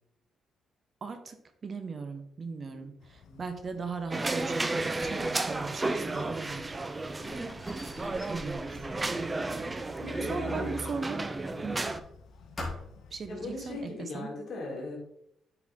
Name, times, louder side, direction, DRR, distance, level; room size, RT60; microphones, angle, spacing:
voice 1, 1.0-1.4 1.6-6.8 8.2-9.7 10.3-11.3 11.6-11.8 13.1-14.3, right 4 dB, 40° right, 8 dB, 0.9 m, -38 dB
sound 1, 3.0-13.8, left 5 dB, 75° left, 0.7 m, -55 dB
sound 2, 4.1-12.0, right 2 dB, 20° right, 0.5 m, -33 dB
Squeak, 6.5-10.3 10.7-12.3 12.6-13.1, left 2 dB, 25° left, 2.5 m, -45 dB
voice 2, 7.2-7.7 10.0-10.8 11.5-11.7 13.3-15.0, left 2 dB, 55° left, -1 dB, 2.9 m, -40 dB
8.3 x 4.7 x 3.7 m, 0.75 s
cardioid pair, 90°, 0 cm